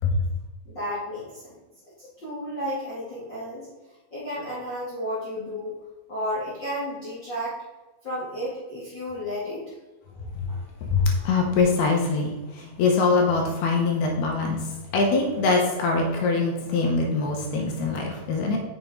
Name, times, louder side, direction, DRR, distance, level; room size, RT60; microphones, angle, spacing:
voice 1, 0.6-1.6 2.0-3.7 4.1-5.8 6.1-7.6 8.0-9.6, equal, 45° left, -8 dB, 1.4 m, -32 dB
voice 2, 10.8-14.6 14.9-18.6, left 4 dB, 70° left, 0 dB, 2.6 m, -23 dB
6.9 x 6.8 x 3.8 m, 1.2 s
omnidirectional pair, 5.5 m